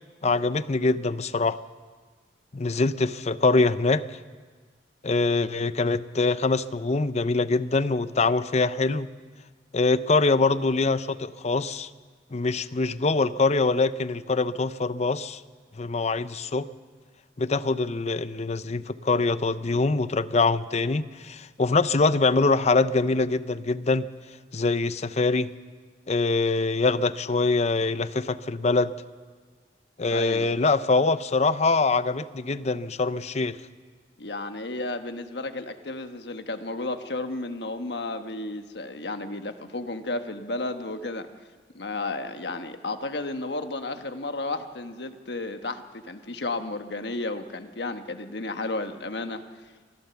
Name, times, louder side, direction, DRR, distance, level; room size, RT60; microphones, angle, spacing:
voice 1, 0.2-1.6 2.5-4.0 5.0-9.1 9.7-11.9 12.3-15.4 15.8-16.7 17.4-24.1 24.5-25.5 26.1-28.9 30.0-33.6, left 3 dB, 40° left, 14 dB, 0.6 m, -24 dB
voice 2, 30.1-30.5 34.2-41.3 41.7-49.4, left 2 dB, 70° left, 7 dB, 1.3 m, -33 dB
24.0 x 15.0 x 7.1 m, 1.5 s
head